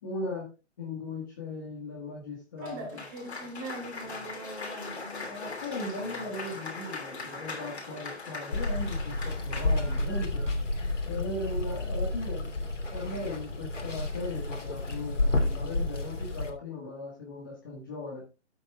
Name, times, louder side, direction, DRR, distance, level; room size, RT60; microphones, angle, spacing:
voice 1, 0.0-0.5 0.8-3.0 5.3-10.4 11.0-12.5 12.9-18.2, left 2 dB, 15° left, -2 dB, 1.5 m, -38 dB
Cheering / Applause, 2.6-10.3, left 3 dB, 60° left, 3.1 m, -40 dB
voice 2, 2.6-5.3, right 1 dB, 15° right, 0 dB, 2.8 m, -41 dB
Water, 8.5-16.5, left 2 dB, 85° left, 3.2 m, -30 dB
13.0 x 8.6 x 2.3 m, 0.28 s
hypercardioid pair, 170°, 36 cm